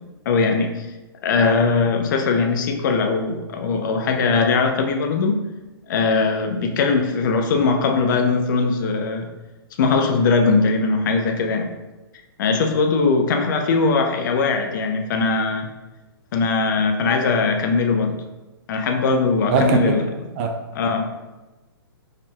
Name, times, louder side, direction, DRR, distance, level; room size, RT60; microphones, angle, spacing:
voice 1, 0.3-0.9 1.2-5.5 5.9-9.3 9.8-11.7 12.4-15.7 16.3-18.2 18.7-20.1 20.7-21.1, left 4 dB, 50° left, 4 dB, 0.5 m, -20 dB
voice 2, 19.5-20.0 20.4-20.6, right 4 dB, 30° right, 4 dB, 0.4 m, -20 dB
4.8 x 2.8 x 2.3 m, 1.1 s
hypercardioid pair, 135°, 13 cm